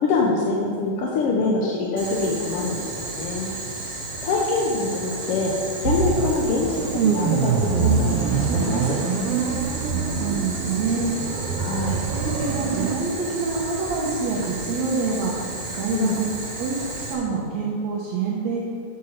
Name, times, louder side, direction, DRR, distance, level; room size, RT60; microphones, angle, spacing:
voice 1, 0.0-3.5 4.2-6.8 7.0-9.0 11.6-12.0 15.9-16.2, left 3 dB, 65° left, -2 dB, 1.6 m, -24 dB
Boiling, 2.0-17.1, right 2 dB, 40° right, 1.5 m, -33 dB
sound 1, 5.8-13.0, right 6 dB, 90° right, 1.3 m, -24 dB
voice 2, 9.9-11.3 11.8-16.3 16.6-16.8 17.1-18.6, right 4 dB, 70° right, -4 dB, 2.4 m, -27 dB
8.3 x 7.1 x 6.7 m, 2.3 s
omnidirectional pair, 3.4 m